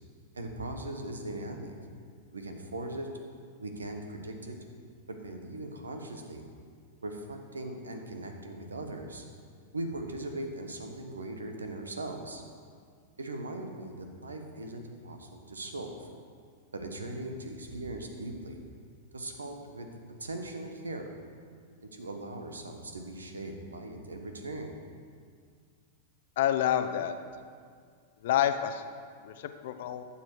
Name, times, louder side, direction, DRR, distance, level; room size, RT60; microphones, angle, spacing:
voice 1, 0.3-1.7 2.3-3.1 3.6-4.6 5.1-6.4 7.0-9.2 9.7-12.4 13.2-16.1 16.7-18.6 19.1-19.9 20.2-21.0 21.8-24.8, right 1 dB, 85° right, 5 dB, 1.1 m, -39 dB
voice 2, 26.4-27.1 28.2-28.8 29.2-30.0, left 10 dB, 60° left, 9 dB, 0.7 m, -28 dB
11.5 x 7.1 x 4.7 m, 2.1 s
hypercardioid pair, 100°, 0 cm